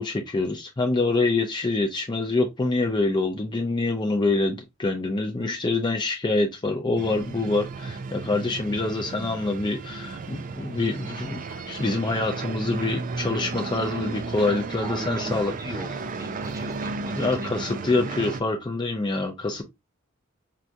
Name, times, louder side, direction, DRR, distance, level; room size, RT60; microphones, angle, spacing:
voice 1, 0.0-15.5 17.2-19.6, left 3 dB, 20° left, 0.4 m, -26 dB
sound 1, 7.0-18.4, right 4 dB, 40° right, 0.4 m, -34 dB
voice 2, 14.8-18.2, right 1 dB, 15° right, 0.9 m, -39 dB
5.6 x 2.4 x 2.5 m
head